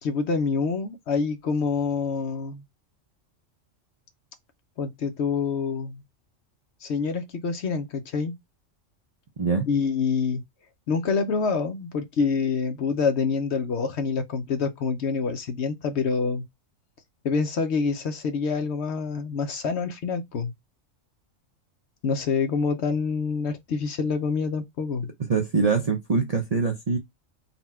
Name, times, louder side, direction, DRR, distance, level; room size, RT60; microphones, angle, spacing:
voice 1, 0.0-2.6 4.8-6.0 6.8-8.3 9.7-10.4 10.9-16.4 17.2-20.5 22.0-25.1, left 5 dB, 60° left, 0.9 m, -26 dB
voice 2, 9.4-9.7 25.3-27.0, right 4 dB, 45° right, 0.5 m, -23 dB
4.2 x 2.3 x 4.2 m
omnidirectional pair, 1.3 m